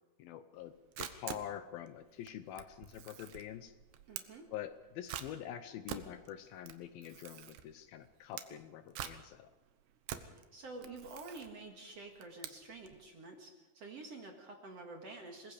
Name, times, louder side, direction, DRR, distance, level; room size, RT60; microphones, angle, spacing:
voice 1, 0.2-3.7 4.5-9.5, left 10 dB, 75° left, 10 dB, 2.4 m, -46 dB
Camera, 0.6-13.0, right 11 dB, 85° right, 3.2 m, -48 dB
voice 2, 4.1-4.5 10.3-15.5, right 3 dB, 50° right, 3 dB, 2.3 m, -49 dB
26.0 x 21.0 x 5.0 m, 1.2 s
omnidirectional pair, 4.7 m